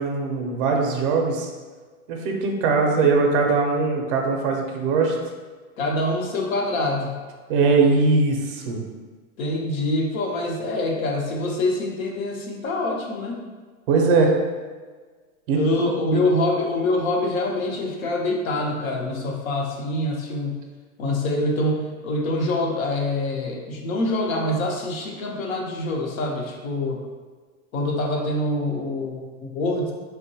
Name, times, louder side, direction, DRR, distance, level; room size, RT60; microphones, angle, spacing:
voice 1, 0.0-1.5 2.1-5.2 7.5-8.8 13.9-14.4 15.5-16.3, right 4 dB, 40° right, 2 dB, 0.5 m, -21 dB
voice 2, 5.8-7.1 9.4-13.4 15.5-20.6 21.0-27.0 27.7-29.9, left 1 dB, 75° left, 0 dB, 0.8 m, -25 dB
3.6 x 2.2 x 2.7 m, 1.4 s
supercardioid pair, 155°, 41 cm